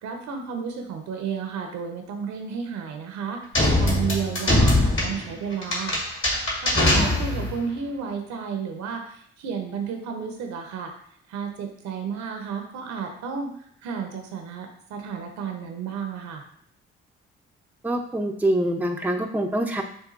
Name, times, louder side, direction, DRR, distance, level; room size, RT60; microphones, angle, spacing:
voice 1, 0.0-3.4 3.8-6.0 6.6-10.9 11.3-13.5 13.8-16.4, right 6 dB, 65° right, 4 dB, 0.9 m, -32 dB
sound 1, 3.5-7.6, left 1 dB, 40° left, 1.8 m, -22 dB
voice 2, 17.8-19.8, right 1 dB, 5° right, 3 dB, 0.6 m, -25 dB
7.0 x 2.6 x 2.5 m, 0.65 s
hypercardioid pair, 45°, 30 cm